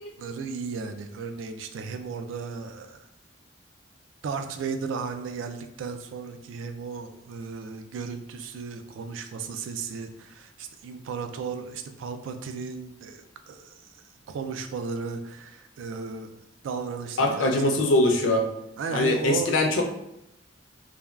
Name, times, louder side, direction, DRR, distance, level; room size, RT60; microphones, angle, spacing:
voice 1, 0.2-3.1 4.2-13.7 14.3-16.3 16.6-17.8 18.8-19.5, right 5 dB, 90° right, 8 dB, 0.3 m, -35 dB
voice 2, 17.2-18.5 18.9-19.8, left 1 dB, 85° left, 3 dB, 0.5 m, -22 dB
3.3 x 2.2 x 2.2 m, 0.82 s
head